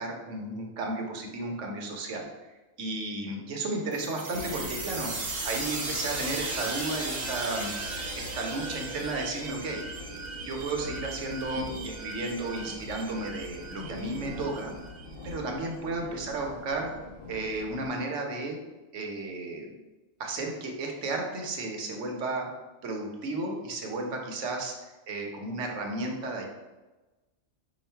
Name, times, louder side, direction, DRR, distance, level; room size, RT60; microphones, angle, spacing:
voice 1, 0.0-5.1 5.4-7.7 8.1-9.8 10.4-14.7 15.2-16.9 17.3-18.6 18.9-19.7 20.2-22.5 22.8-24.7 25.1-26.5, right 2 dB, 70° right, 1 dB, 1.1 m, -33 dB
sound 1, 3.9-15.3, right 2 dB, 45° right, 1.0 m, -37 dB
sound 2, 4.3-17.9, left 2 dB, 50° left, 0.8 m, -44 dB
4.8 x 2.4 x 4.4 m, 1.1 s
omnidirectional pair, 1.3 m